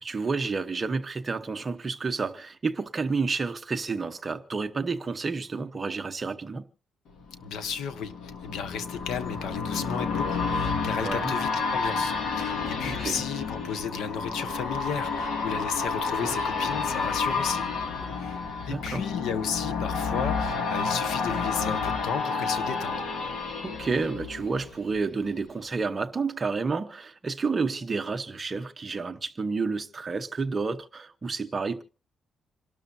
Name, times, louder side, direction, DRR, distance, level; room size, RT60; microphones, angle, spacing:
voice 1, 0.0-6.6 11.0-11.3 12.9-13.2 16.2-16.3 18.7-19.1 23.6-31.8, right 4 dB, 20° right, 1.0 m, -30 dB
sound 1, 7.2-25.0 25.4-25.5, left 4 dB, 60° left, 2.3 m, -30 dB
voice 2, 7.4-17.6 18.1-23.0, left 7 dB, 90° left, 1.3 m, -34 dB
sound 2, 8.9-19.1, right 3 dB, 5° right, 4.2 m, -50 dB
27.5 x 12.5 x 2.7 m
cardioid pair, 170°, 0 cm